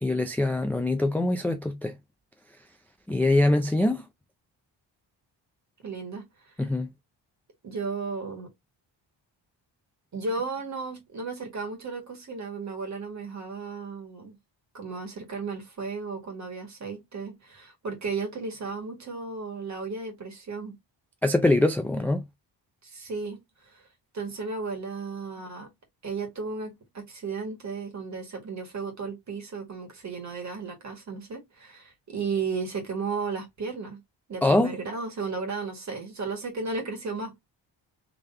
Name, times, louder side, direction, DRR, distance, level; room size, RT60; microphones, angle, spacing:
voice 1, 0.0-1.9 3.1-4.0 6.6-6.9 21.2-22.2 34.4-34.7, left 2 dB, 5° left, 0.3 m, -23 dB
voice 2, 5.8-6.5 7.6-8.5 10.1-14.3 14.7-20.8 22.8-23.9 24.1-25.7 26.0-34.0 34.3-37.4, right 4 dB, 40° right, 1.8 m, -34 dB
3.7 x 3.3 x 2.7 m
wide cardioid pair, 140°, 44 cm